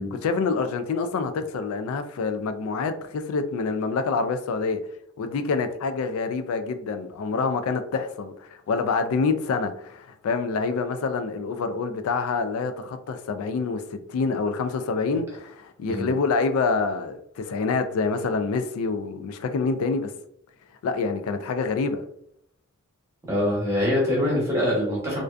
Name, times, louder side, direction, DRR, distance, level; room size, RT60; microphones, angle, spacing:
voice 1, 0.1-4.8 5.2-20.1 20.8-22.1, left 4 dB, 85° left, 0.3 m, -26 dB
voice 2, 23.2-25.2, left 1 dB, 15° right, 0.8 m, -24 dB
2.5 x 2.2 x 2.3 m
head